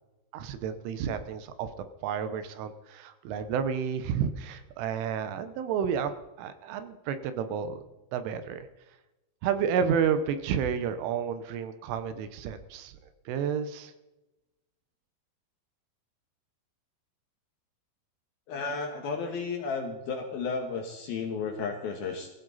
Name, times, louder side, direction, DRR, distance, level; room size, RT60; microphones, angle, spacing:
voice 1, 0.3-1.7 2.0-6.1 6.4-7.8 8.1-8.7 9.4-12.9 13.3-13.9, right 7 dB, 80° right, 10 dB, 3.3 m, -30 dB
voice 2, 18.5-22.3, left 4 dB, 65° left, 2 dB, 2.6 m, -33 dB
21.5 x 15.5 x 4.1 m, 1.0 s
omnidirectional pair, 5.9 m